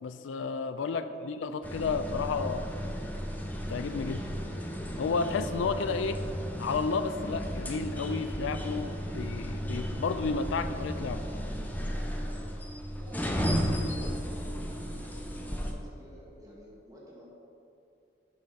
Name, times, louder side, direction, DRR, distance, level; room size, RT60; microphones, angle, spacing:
voice 1, 0.0-2.7 3.7-4.3 5.0-6.2 6.6-11.2, left 4 dB, 85° left, 10 dB, 0.3 m, -32 dB
sound 1, 1.6-15.7, equal, 10° left, 0.5 m, -34 dB
voice 2, 13.0-17.2, equal, 20° right, -6 dB, 1.6 m, -49 dB
7.8 x 5.6 x 4.0 m, 2.6 s
head